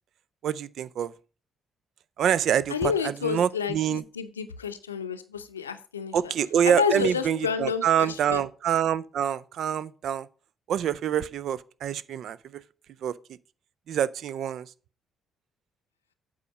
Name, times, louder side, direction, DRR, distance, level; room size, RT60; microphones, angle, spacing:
voice 1, 0.4-1.1 2.2-4.0 6.1-10.3 10.7-12.6 13.0-13.1 13.9-14.7, right 9 dB, 55° right, 0.5 m, -26 dB
voice 2, 2.7-6.2 6.8-8.4, left 6 dB, 85° left, 0.6 m, -30 dB
8.4 x 5.0 x 6.7 m
figure-of-eight pair, 45°, 0 cm